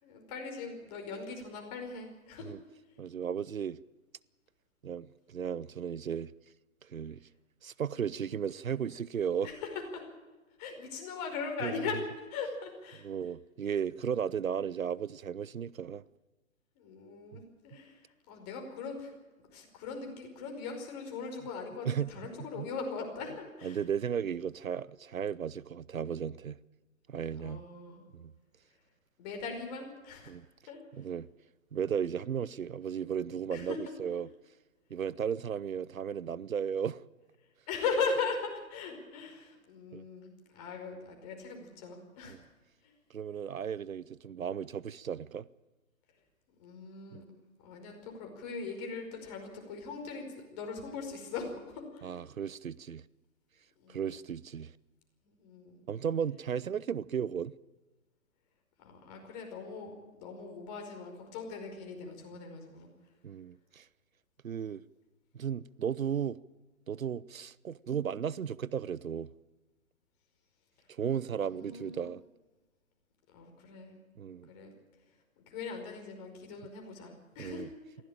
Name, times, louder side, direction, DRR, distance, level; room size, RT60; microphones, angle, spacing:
voice 1, 0.0-2.5 9.4-10.0 10.6-12.0 12.3-13.1 16.7-19.1 19.5-23.8 27.3-28.0 29.2-30.3 30.7-30.8 33.5-33.8 37.7-42.4 42.8-42.9 46.6-47.2 47.6-52.1 53.8-54.0 55.2-55.8 58.8-62.9 71.4-72.1 73.3-74.0 74.5-74.7 75.5-77.7, left 5 dB, 30° left, 5.1 m, -40 dB
voice 2, 3.0-3.8 4.8-6.3 6.8-7.2 7.6-9.5 11.6-11.8 13.0-16.0 17.3-17.4 21.8-22.1 22.4-22.7 23.6-26.6 27.1-27.6 28.1-28.3 30.3-30.4 31.0-31.3 31.7-34.3 34.9-37.0 39.9-40.0 42.3-42.4 43.1-45.5 47.1-47.2 52.0-53.0 53.9-54.7 55.9-57.5 63.2-63.9 64.4-64.8 65.3-66.4 66.9-69.3 70.9-72.2 74.2-74.5 77.4-77.7, right 8 dB, 70° right, 0.7 m, -35 dB
22.5 x 16.0 x 9.0 m
figure-of-eight pair, 135°, 42 cm